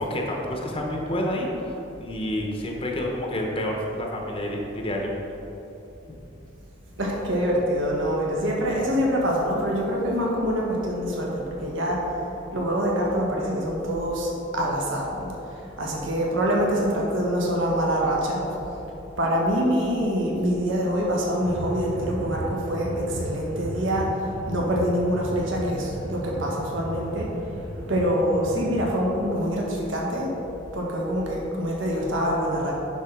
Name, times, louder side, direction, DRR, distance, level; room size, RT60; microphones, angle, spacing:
voice 1, 0.0-5.1, left 1 dB, 25° left, 0 dB, 0.9 m, -29 dB
voice 2, 7.0-11.3 11.6-12.0 12.5-15.3 15.8-18.4 19.2-22.4 22.7-22.9 23.2-24.1 24.5-27.3 27.9-29.6 29.9-30.3 30.7-32.8, equal, 70° right, -2 dB, 1.5 m, -25 dB
sound 1, 21.4-29.0, right 1 dB, 85° right, 0.8 m, -35 dB
10.0 x 4.0 x 5.8 m, 3.0 s
head